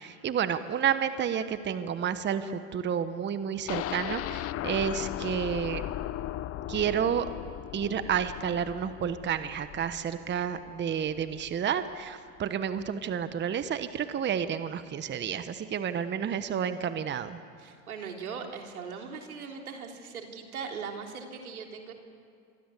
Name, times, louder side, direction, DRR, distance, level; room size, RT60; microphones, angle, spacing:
voice 1, 0.0-5.8 6.7-7.3 7.7-17.4, right 8 dB, 25° right, 11 dB, 1.2 m, -30 dB
sound 1, 3.7-11.5 11.9-12.0 12.4-12.5, left 13 dB, 35° left, 0.8 m, -37 dB
voice 2, 17.6-21.9, right 6 dB, 85° right, 2 dB, 3.5 m, -39 dB
26.0 x 24.5 x 8.4 m, 2.3 s
hypercardioid pair, 95°, 42 cm